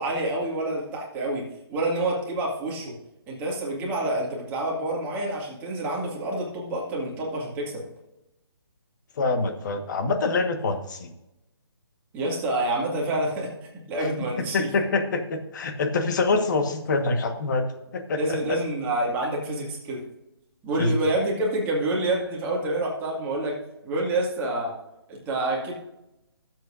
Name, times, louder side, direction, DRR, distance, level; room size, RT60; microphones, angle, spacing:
voice 1, 0.0-3.0 3.3-7.9 12.1-14.7 18.2-20.1 20.6-24.8 25.1-25.7, right 1 dB, 15° right, -3 dB, 2.0 m, -28 dB
voice 2, 9.2-11.1 14.5-17.7 17.9-18.6 20.8-20.9, left 3 dB, 45° left, 6 dB, 1.4 m, -25 dB
16.5 x 7.6 x 2.6 m, 0.93 s
hypercardioid pair, 160°, 14 cm